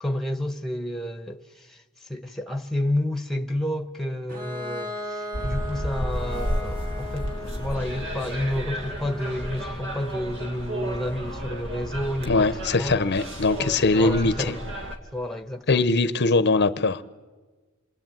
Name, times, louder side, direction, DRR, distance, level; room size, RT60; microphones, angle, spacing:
voice 1, 0.0-12.5 12.7-13.0 13.8-14.6 15.1-15.8, left 1 dB, ahead, 1.3 m, -30 dB
Bowed string instrument, 4.3-9.9, left 1 dB, 40° right, 3.1 m, -37 dB
sound 1, 5.3-15.0, equal, 65° right, 2.5 m, -32 dB
voice 2, 12.3-14.5 15.7-17.0, left 3 dB, 55° left, 0.9 m, -21 dB
27.5 x 22.5 x 9.2 m
head